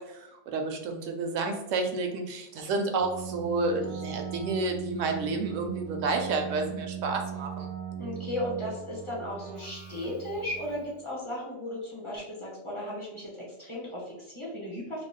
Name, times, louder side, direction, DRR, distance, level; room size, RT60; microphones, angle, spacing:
voice 1, 0.0-7.7, right 3 dB, 80° right, 4 dB, 0.9 m, -30 dB
Keyboard (musical), 2.9-11.0, right 8 dB, 55° right, 0.5 m, -39 dB
voice 2, 8.0-15.0, left 1 dB, 25° left, -5 dB, 0.9 m, -36 dB
2.4 x 2.3 x 3.5 m, 0.88 s
omnidirectional pair, 1.3 m